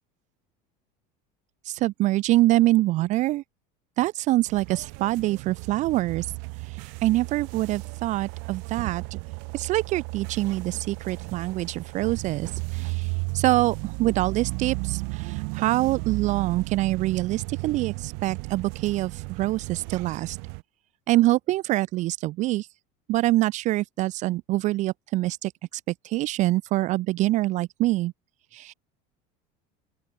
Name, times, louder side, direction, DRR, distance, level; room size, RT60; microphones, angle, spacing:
voice 1, 1.7-3.4 4.0-6.3 6.6-9.2 9.5-20.4 21.1-22.7 23.1-28.1 28.5-28.7, right 17 dB, 40° right, 0.5 m, -25 dB
sound 1, 4.5-20.6, right 39 dB, 65° right, 0.9 m, -34 dB
open air
cardioid pair, 160°, 19 cm